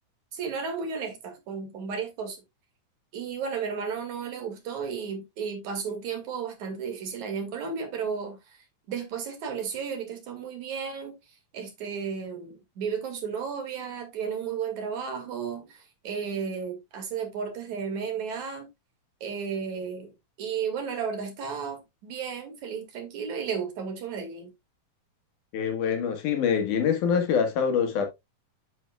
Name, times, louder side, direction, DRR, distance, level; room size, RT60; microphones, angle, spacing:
voice 1, 0.3-2.4 3.1-11.1 11.5-18.7 19.2-20.1 20.4-24.5, right 6 dB, 65° right, 3.5 m, -33 dB
voice 2, 25.5-28.1, left 7 dB, 75° left, 3.1 m, -25 dB
8.9 x 7.8 x 2.3 m
omnidirectional pair, 3.6 m